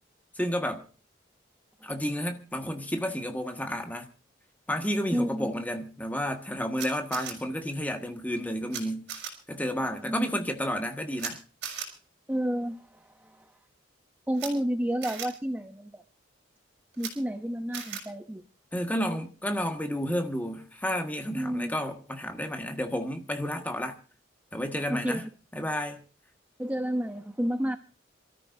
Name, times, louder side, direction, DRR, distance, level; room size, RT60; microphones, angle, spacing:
voice 1, 0.3-0.9 1.8-4.1 4.7-9.1 9.5-11.4 18.7-24.0 24.5-25.3 25.5-26.0, equal, 10° left, 1.5 m, -31 dB
voice 2, 5.1-5.5 10.0-10.3 12.3-13.5 14.3-16.0 17.0-18.4 21.3-21.7 24.9-25.3 26.6-27.8, equal, 10° right, 0.6 m, -30 dB
Camera, 6.8-7.3 8.7-8.8 9.1-9.3 11.2-11.3 11.6-11.9 14.3-14.5 15.0-15.3 16.9-17.1 17.7-18.0, right 8 dB, 70° right, 4.6 m, -36 dB
27.0 x 13.5 x 2.6 m
head